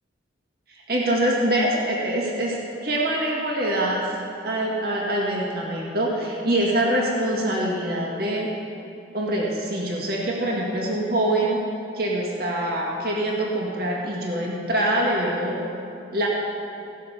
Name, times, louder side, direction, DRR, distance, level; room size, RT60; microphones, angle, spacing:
voice 1, 0.7-2.6 2.8-4.1 4.4-8.5 9.1-11.6 11.9-15.6 16.1-16.3, right 1 dB, 55° right, -3 dB, 1.9 m, -24 dB
16.5 x 6.5 x 5.7 m, 2.8 s
head